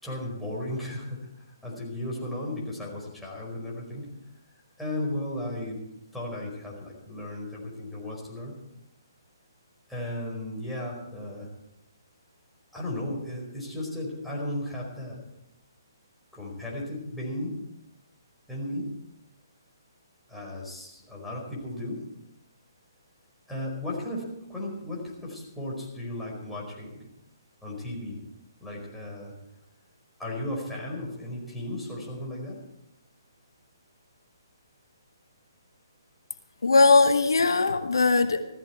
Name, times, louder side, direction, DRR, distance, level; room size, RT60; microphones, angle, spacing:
voice 1, 0.0-4.1 4.8-5.8 6.1-8.6 9.9-11.5 12.7-15.2 16.3-17.6 18.5-18.9 20.3-22.1 23.5-27.1 27.6-28.2 28.6-29.3 30.2-32.6, left 1 dB, 5° left, -5 dB, 5.0 m, -35 dB
voice 2, 36.6-38.5, left 3 dB, 75° left, 9 dB, 1.1 m, -20 dB
16.0 x 14.5 x 4.6 m, 0.86 s
figure-of-eight pair, 140°, 2 cm